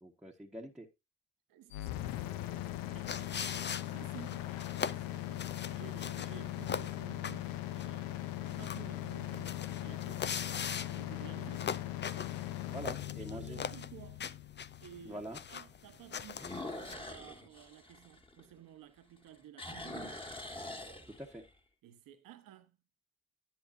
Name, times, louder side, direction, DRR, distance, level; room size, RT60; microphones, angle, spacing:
voice 1, 0.0-0.9 12.7-13.6 15.0-15.4 21.1-21.4, right 1 dB, ahead, 1.4 m, -45 dB
voice 2, 1.5-2.2 2.9-3.6 3.9-4.5 5.1-10.6 10.9-11.9 12.8-14.2 14.8-20.3 21.8-22.8, right 11 dB, 75° right, 1.3 m, -54 dB
sound 1, 1.7-15.6, left 14 dB, 85° left, 0.8 m, -40 dB
sound 2, 2.7-3.3 4.0-4.1 9.3-9.8 10.3-10.4 10.9-11.0 11.3-11.4 12.9-13.0 16.3-18.8 19.2-21.5, left 2 dB, 15° left, 1.9 m, -45 dB
sound 3, 3.1-16.9, left 7 dB, 30° left, 0.6 m, -42 dB
10.0 x 9.9 x 2.7 m
supercardioid pair, 60°, 34 cm